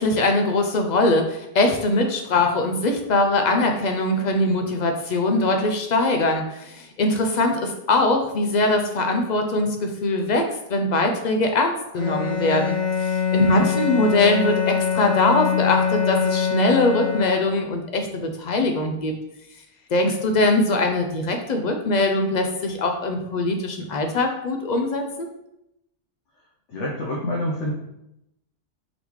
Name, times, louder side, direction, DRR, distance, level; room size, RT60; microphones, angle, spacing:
voice 1, 0.0-19.1 19.9-25.3, left 2 dB, 60° left, 4 dB, 0.4 m, -22 dB
Bowed string instrument, 11.9-17.7, left 7 dB, 30° left, 0.8 m, -24 dB
voice 2, 26.7-27.7, left 1 dB, 75° left, -3 dB, 1.1 m, -27 dB
3.9 x 3.4 x 3.0 m, 0.84 s
omnidirectional pair, 1.2 m